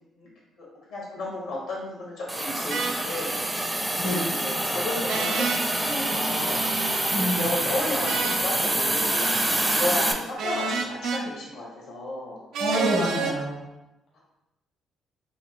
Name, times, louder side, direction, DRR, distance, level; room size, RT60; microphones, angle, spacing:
voice 1, 0.6-3.4 4.0-6.7 7.1-9.2 9.7-12.4 14.1-14.2, left 2 dB, 85° left, -4 dB, 1.3 m, -33 dB
Hiss, 2.3-10.1, right 1 dB, 10° right, 0.4 m, -26 dB
sound 1, 2.7-3.0 5.1-5.6 8.0-8.4 10.4-11.2 12.5-13.4, right 5 dB, 80° right, 0.3 m, -28 dB
voice 2, 4.0-4.3 7.1-7.4 12.6-13.6, equal, 55° left, -5 dB, 0.8 m, -27 dB
3.3 x 2.5 x 2.8 m, 0.94 s
cardioid pair, 90°, 0 cm